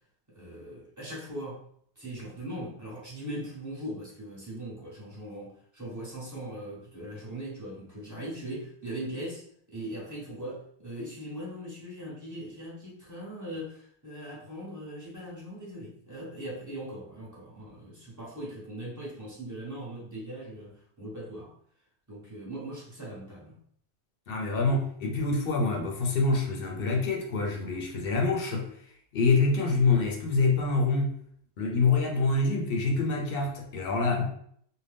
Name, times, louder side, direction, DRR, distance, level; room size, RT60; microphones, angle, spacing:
voice 1, 0.3-1.6 2.0-21.5 22.1-23.6, right 1 dB, 20° right, -6 dB, 1.0 m, -40 dB
voice 2, 24.3-28.7 29.1-31.1 31.6-34.3, left 3 dB, 65° left, 1 dB, 0.8 m, -26 dB
2.7 x 2.2 x 3.3 m, 0.63 s
omnidirectional pair, 1.1 m